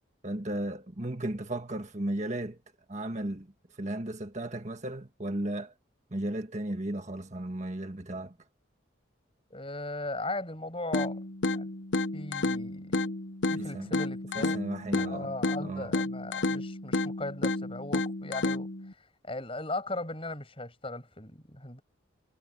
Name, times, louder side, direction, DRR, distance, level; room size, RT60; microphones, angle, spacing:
voice 1, 0.2-2.6 2.9-5.7 6.1-8.4 13.6-13.9 14.3-15.3 15.6-15.9, right 1 dB, 35° right, 1.6 m, -35 dB
voice 2, 9.5-11.2 11.5-11.7 12.1-13.1 13.5-14.6 15.0-18.7 19.0-21.8, left 2 dB, 30° left, 7.8 m, -38 dB
sound 1, 10.9-18.9, left 2 dB, 65° left, 0.9 m, -31 dB
head